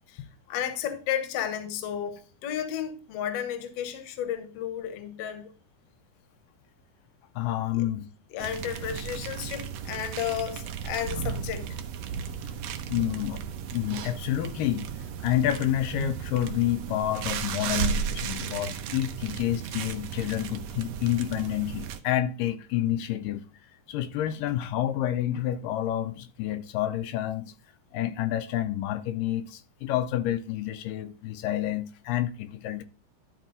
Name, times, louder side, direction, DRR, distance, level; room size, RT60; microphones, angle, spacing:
voice 1, 0.5-5.5 7.7-7.9 8.3-11.8, left 10 dB, 60° left, 1.8 m, -33 dB
voice 2, 7.4-8.1 12.9-13.4 13.7-14.9 15.2-23.4 23.9-27.5 27.9-32.8, left 12 dB, 85° left, 2.3 m, -29 dB
sound 1, 8.4-22.0, right 8 dB, 85° right, 1.5 m, -35 dB
12.0 x 4.4 x 3.9 m
omnidirectional pair, 3.8 m